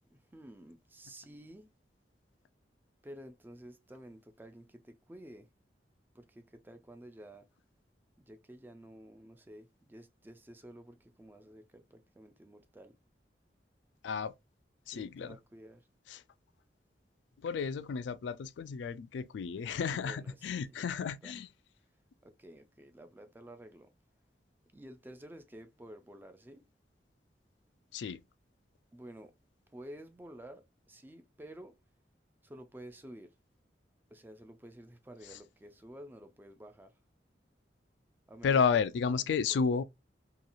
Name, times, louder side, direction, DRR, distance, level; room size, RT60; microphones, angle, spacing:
voice 1, 0.1-1.7 3.0-5.5 6.1-7.5 8.2-12.9 14.9-15.9 19.5-19.6 19.9-21.3 22.2-23.9 24.7-26.6 28.9-29.3 29.7-31.8 32.4-33.4 34.1-37.0 38.3-38.7 39.2-39.7, right 1 dB, 10° right, 0.4 m, -51 dB
voice 2, 14.9-15.4 16.1-16.2 17.4-21.5 27.9-28.2 38.4-39.8, left 6 dB, 85° left, 0.3 m, -32 dB
2.8 x 2.3 x 2.5 m
head